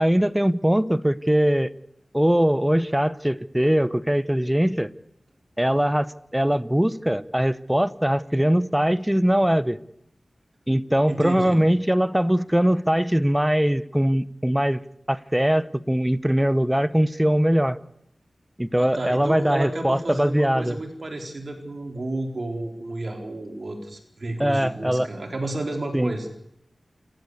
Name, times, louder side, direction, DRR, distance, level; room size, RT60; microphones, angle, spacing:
voice 1, 0.0-1.7 2.1-4.9 5.6-6.1 6.3-9.8 10.7-14.8 15.1-17.8 18.6-20.8 24.4-25.1 25.9-26.1, equal, 10° right, 16 dB, 0.9 m, -21 dB
voice 2, 11.1-11.6 18.7-26.3, right 2 dB, 55° right, 3 dB, 4.4 m, -31 dB
29.0 x 15.5 x 8.1 m, 0.77 s
wide cardioid pair, 65°, 0 cm